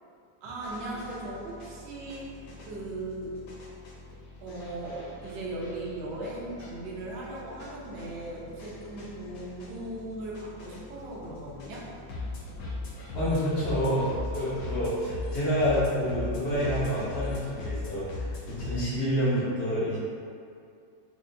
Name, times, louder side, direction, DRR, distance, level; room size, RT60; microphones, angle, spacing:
voice 1, 0.4-3.3 4.4-11.9, right 2 dB, 70° right, -5 dB, 1.2 m, -38 dB
sound 1, 0.6-18.8, left 2 dB, 65° left, 0.9 m, -40 dB
voice 2, 13.1-20.0, equal, 80° left, -10 dB, 0.5 m, -28 dB
4.6 x 2.1 x 2.6 m, 2.4 s
omnidirectional pair, 2.0 m